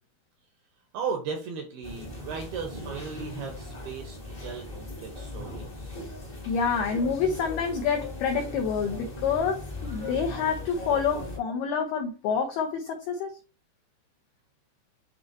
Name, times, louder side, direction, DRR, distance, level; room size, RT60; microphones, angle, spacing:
voice 1, 0.9-6.0, right 5 dB, 75° right, 2.5 m, -36 dB
sound 1, 1.8-11.4, left 2 dB, 40° left, 0.7 m, -38 dB
voice 2, 6.5-13.4, left 6 dB, 80° left, 2.2 m, -28 dB
9.3 x 4.3 x 2.9 m
omnidirectional pair, 5.7 m